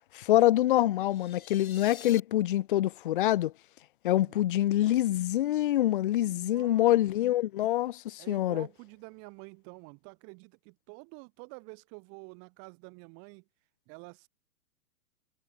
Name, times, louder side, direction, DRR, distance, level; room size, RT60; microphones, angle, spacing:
voice 1, 0.1-3.5 4.0-8.7, left 14 dB, 40° left, 0.4 m, -25 dB
sound 1, 1.0-2.2, left 8 dB, 70° left, 2.2 m, -47 dB
voice 2, 4.1-4.5 6.3-7.0 8.2-13.4 13.9-14.3, right 35 dB, 35° right, 2.7 m, -49 dB
figure-of-eight pair, 120°, 44 cm